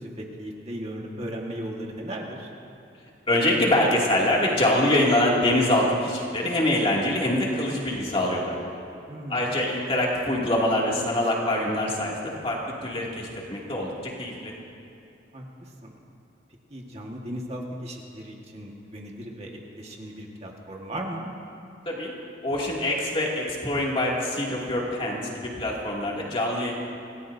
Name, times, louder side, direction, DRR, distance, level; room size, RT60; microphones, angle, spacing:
voice 1, 0.0-2.5 9.1-9.5 15.3-15.9 16.7-21.3, right 1 dB, 35° right, -1 dB, 1.7 m, -36 dB
voice 2, 3.3-8.6 9.3-14.5 21.9-22.1 22.4-26.7, left 1 dB, 30° left, -3 dB, 2.5 m, -24 dB
27.0 x 18.0 x 2.7 m, 2.8 s
head